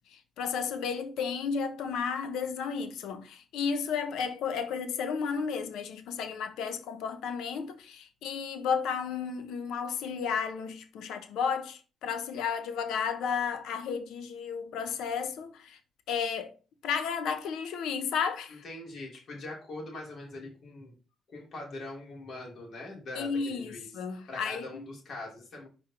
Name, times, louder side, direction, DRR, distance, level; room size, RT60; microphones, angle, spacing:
voice 1, 0.1-15.8 16.1-16.5 16.8-18.6 23.2-24.8, left 6 dB, 85° left, 0.9 m, -33 dB
voice 2, 18.5-20.9 21.3-23.9 24.3-25.7, left 2 dB, 60° left, 3.4 m, -42 dB
5.1 x 4.3 x 4.4 m
cardioid pair, 90°, 0 cm